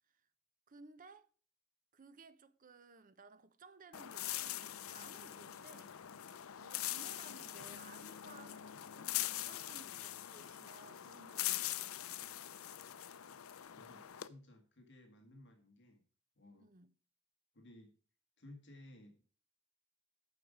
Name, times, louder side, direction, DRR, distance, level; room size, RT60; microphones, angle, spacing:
voice 1, 0.7-1.3 1.9-5.9 6.6-12.2 16.6-16.9, right 4 dB, 40° right, 0.8 m, -59 dB
sound 1, 3.9-14.3, left 13 dB, 80° left, 0.6 m, -43 dB
voice 2, 13.7-16.0 16.4-16.7 17.5-17.9 18.4-19.2, left 1 dB, 55° left, 1.7 m, -58 dB
9.4 x 6.4 x 5.0 m
head